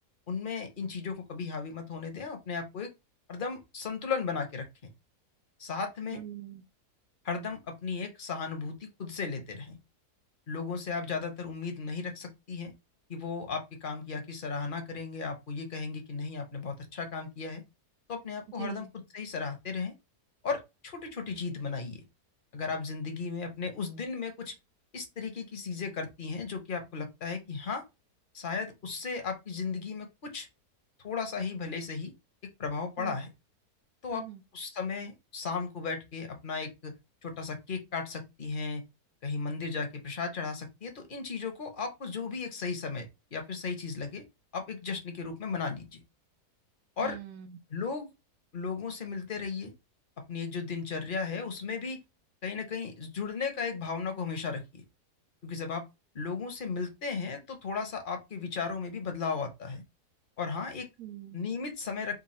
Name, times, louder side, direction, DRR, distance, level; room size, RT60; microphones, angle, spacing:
voice 1, 0.3-2.9 3.3-4.7 5.6-6.2 7.2-9.8 10.5-12.7 13.1-17.6 18.1-18.9 19.1-19.9 20.4-22.0 22.5-24.5 24.9-27.8 28.3-30.5 31.0-32.1 32.6-33.3 34.0-34.2 34.5-36.9 37.2-38.8 39.2-44.2 44.5-46.0 47.0-47.2 47.7-48.1 48.5-49.7 50.3-52.0 52.4-54.8 55.4-55.8 56.1-59.8 60.4-60.9 61.3-62.2, left 5 dB, 40° left, 0.9 m, -35 dB
voice 2, 6.1-6.6 18.6-18.9 33.0-33.2 34.1-34.4 47.0-47.6 61.0-61.4, right 11 dB, 75° right, 1.2 m, -42 dB
3.9 x 2.2 x 4.2 m
omnidirectional pair, 1.7 m